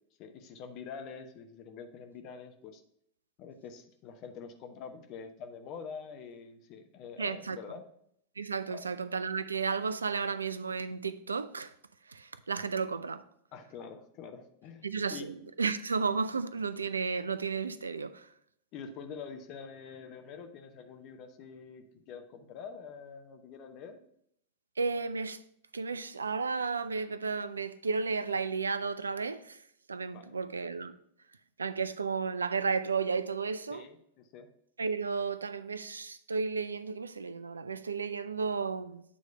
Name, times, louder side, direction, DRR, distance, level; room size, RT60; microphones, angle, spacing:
voice 1, 0.2-2.8 3.4-7.8 8.7-8.8 13.5-15.3 18.7-24.0 30.1-30.4 33.7-34.5, left 6 dB, 40° left, 0.8 m, -46 dB
voice 2, 7.2-7.6 8.4-11.7 12.1-13.2 14.8-15.3 15.6-18.3 24.8-25.4 25.7-29.6 29.9-31.0 31.6-33.8 34.8-39.0, right 5 dB, 75° right, 0.3 m, -33 dB
8.5 x 3.1 x 5.3 m
figure-of-eight pair, 90°, 0 cm